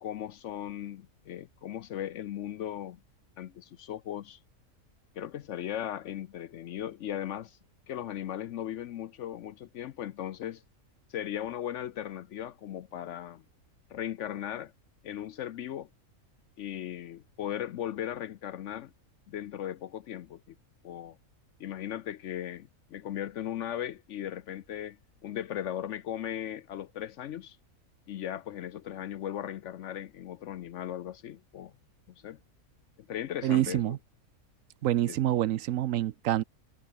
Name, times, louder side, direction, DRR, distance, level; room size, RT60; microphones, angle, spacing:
voice 1, 0.0-3.0 3.4-4.4 5.1-7.6 7.9-10.6 11.1-13.4 13.9-14.7 15.0-15.9 16.6-18.9 19.3-20.5 20.8-21.2 21.6-25.0 25.2-27.6 28.1-31.7 32.2-32.4 33.0-34.0 35.1-35.2, left 11 dB, 65° left, 0.8 m, -37 dB
voice 2, 33.4-34.0 34.8-36.4, right 13 dB, 70° right, 0.9 m, -27 dB
omnidirectional pair, 1.5 m